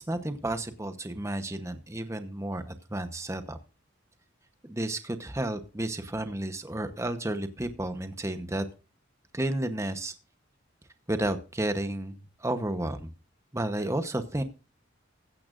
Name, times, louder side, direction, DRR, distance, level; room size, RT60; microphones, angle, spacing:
voice 1, 0.0-3.6 4.6-8.6 9.3-10.1 11.1-13.1 13.5-14.4, right 1 dB, 15° right, 9 dB, 0.9 m, -32 dB
15.5 x 15.5 x 2.5 m, 0.33 s
head